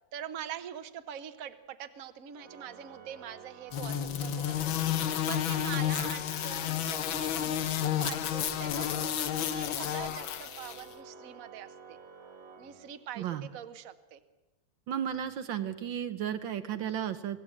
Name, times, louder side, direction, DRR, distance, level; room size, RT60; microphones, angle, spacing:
voice 1, 0.1-4.7 5.3-12.0 12.6-14.2, right 9 dB, 50° right, 10 dB, 1.3 m, -43 dB
Organ, 2.3-13.3, right 5 dB, 30° right, 2.2 m, -51 dB
sound 1, 3.7-10.8, left 10 dB, 75° left, 1.7 m, -31 dB
voice 2, 13.2-13.5 14.9-17.4, right 9 dB, 70° right, 11 dB, 1.6 m, -34 dB
24.5 x 17.0 x 8.5 m, 1.2 s
omnidirectional pair, 2.2 m